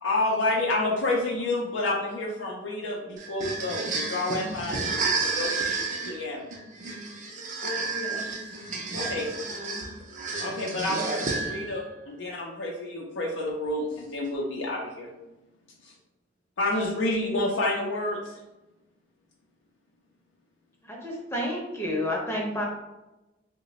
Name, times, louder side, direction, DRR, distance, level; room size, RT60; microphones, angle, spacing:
voice 1, 0.0-6.4 9.0-9.2 10.4-15.1 15.8-15.9 16.6-18.4, left 2 dB, 90° left, -3 dB, 0.5 m, -29 dB
sound 1, 3.2-11.8, right 4 dB, 45° right, 0.5 m, -31 dB
voice 2, 7.6-9.1 9.4-9.9, left 3 dB, 45° left, -2 dB, 0.8 m, -40 dB
voice 3, 20.9-22.6, left 1 dB, 15° left, -2 dB, 0.6 m, -30 dB
2.9 x 2.1 x 3.8 m, 1.0 s
head